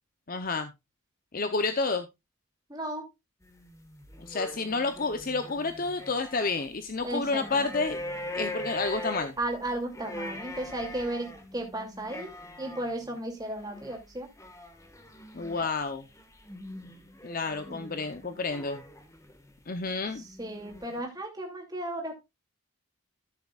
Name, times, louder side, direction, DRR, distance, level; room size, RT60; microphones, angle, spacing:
voice 1, 0.3-0.7 1.3-2.1 4.2-8.0 8.3-9.3 15.3-16.1 17.2-18.8 19.7-20.2, left 3 dB, 40° left, 9 dB, 0.7 m, -30 dB
voice 2, 2.7-3.0 7.0-7.6 9.4-12.3 12.6-14.3 17.7-17.8 20.4-22.1, right 1 dB, 15° right, 2 dB, 2.6 m, -34 dB
sound 1, 3.4-6.6 6.9-19.6 20.2-21.0, left 1 dB, 15° left, 1.5 m, -42 dB
14.0 x 7.1 x 2.4 m, 0.22 s
head